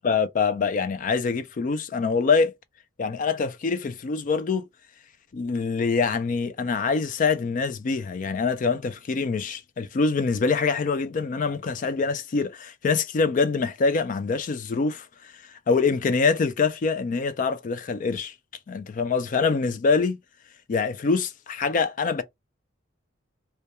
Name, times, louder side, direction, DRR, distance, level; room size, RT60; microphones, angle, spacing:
voice 1, 0.0-2.5 3.0-4.7 5.3-15.1 15.7-18.3 18.7-20.2 20.7-22.2, left 4 dB, 45° left, 0.3 m, -24 dB
2.2 x 2.2 x 2.8 m
head